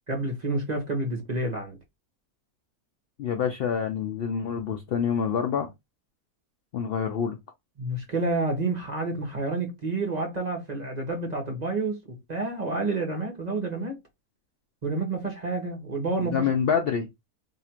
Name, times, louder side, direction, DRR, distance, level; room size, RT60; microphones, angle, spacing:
voice 1, 0.1-1.8 7.8-12.0 12.3-14.0 14.8-16.5, right 2 dB, 35° right, 0.9 m, -29 dB
voice 2, 3.2-5.7 6.7-7.4 16.2-17.1, left 7 dB, 85° left, 0.5 m, -26 dB
2.8 x 2.4 x 4.2 m
omnidirectional pair, 1.6 m